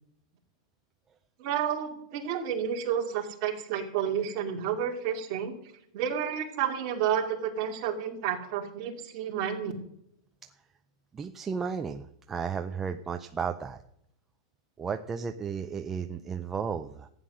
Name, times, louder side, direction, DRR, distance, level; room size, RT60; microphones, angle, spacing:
voice 1, 1.4-5.5 5.9-9.7, right 8 dB, 35° right, 1 dB, 2.5 m, -30 dB
voice 2, 11.1-13.8 14.8-17.1, right 6 dB, 10° right, 6 dB, 0.5 m, -34 dB
15.0 x 9.6 x 6.3 m, 0.76 s
supercardioid pair, 175°, 3 cm